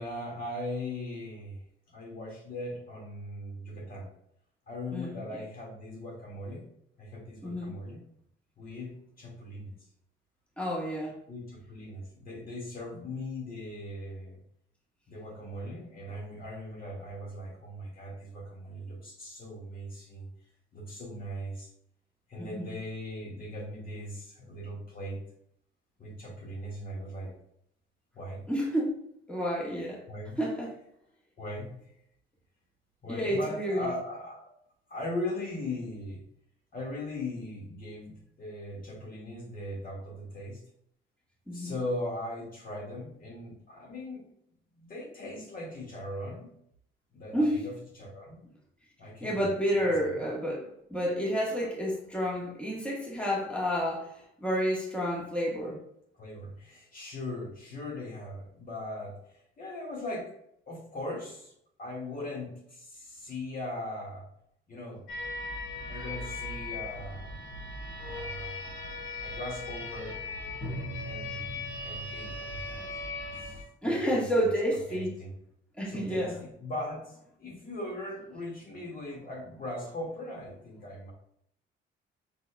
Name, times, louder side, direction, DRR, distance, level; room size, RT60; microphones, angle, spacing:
voice 1, 0.0-1.6 1.9-4.1 4.7-6.6 7.0-8.0 8.6-9.8 11.3-14.4 15.1-20.3 20.7-21.7 22.3-25.2 26.0-27.3 28.1-28.4 30.1-30.4 31.4-31.8 33.0-34.5 34.9-36.2 36.7-40.6 41.5-44.3 44.7-46.5 47.1-48.4 49.0-49.4 49.8-50.2 51.5-51.7 56.2-60.3 60.7-61.5 61.8-64.2 64.7-65.0 65.9-67.3 68.0-70.2 71.0-72.9 73.3-73.6 73.8-74.2 74.9-75.3 75.9-81.1, left 1 dB, 45° left, -2 dB, 1.9 m, -39 dB
voice 2, 4.9-5.4 7.4-7.7 10.6-11.2 22.4-22.8 28.5-29.0 29.3-30.0 30.4-30.7 33.1-33.9 41.5-41.8 47.3-47.6 49.2-55.8 73.8-75.1 75.8-76.4, equal, 5° left, -4 dB, 1.5 m, -30 dB
sound 1, 65.1-73.6, left 2 dB, 85° left, 1.7 m, -38 dB
5.3 x 4.3 x 2.3 m, 0.71 s
cardioid pair, 90°, 20 cm